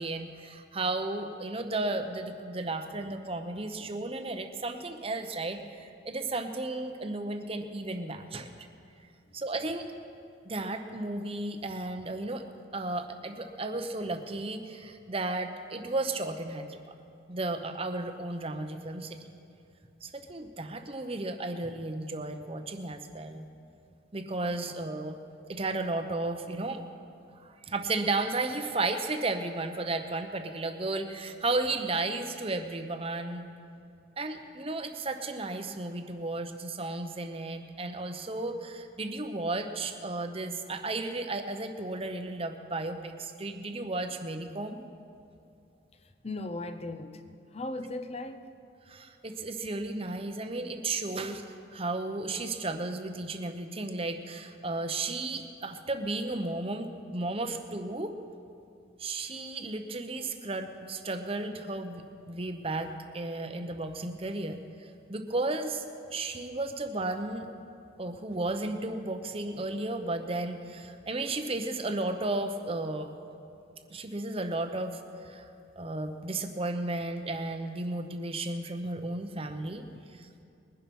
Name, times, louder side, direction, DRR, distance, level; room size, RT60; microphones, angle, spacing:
voice 1, 0.0-8.5 9.3-9.9 10.4-12.4 12.7-16.9 17.3-19.2 20.0-23.5 24.1-25.2 25.5-26.8 27.4-33.5 34.2-44.8 48.9-51.4 51.7-58.1 59.0-65.8 66.1-67.5 68.0-73.1 73.9-75.5 75.8-80.4, right 2 dB, 30° right, 7 dB, 0.8 m, -34 dB
voice 2, 46.2-48.6, left 2 dB, 30° left, 9 dB, 0.7 m, -38 dB
21.0 x 10.5 x 5.4 m, 2.5 s
head